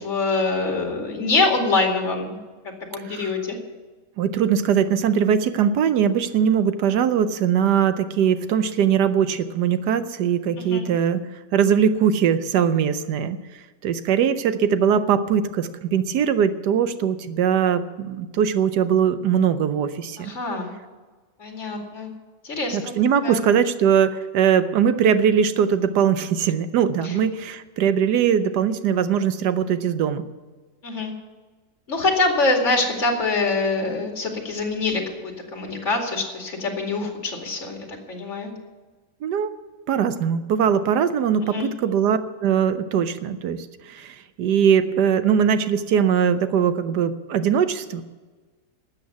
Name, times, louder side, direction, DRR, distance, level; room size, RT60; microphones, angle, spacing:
voice 1, 0.0-2.4 2.9-3.6 10.6-10.9 20.2-20.7 21.4-22.1 22.4-22.9 23.2-23.4 27.0-27.1 30.8-31.1 31.9-38.5 41.4-41.7, left 3 dB, 45° left, 2 dB, 2.7 m, -24 dB
voice 2, 4.2-11.2 11.5-13.4 13.8-20.3 22.7-30.2 39.2-39.5 39.9-43.6 43.9-48.0, right 8 dB, 75° right, 12 dB, 1.3 m, -21 dB
12.5 x 8.3 x 9.4 m, 1.3 s
omnidirectional pair, 1.8 m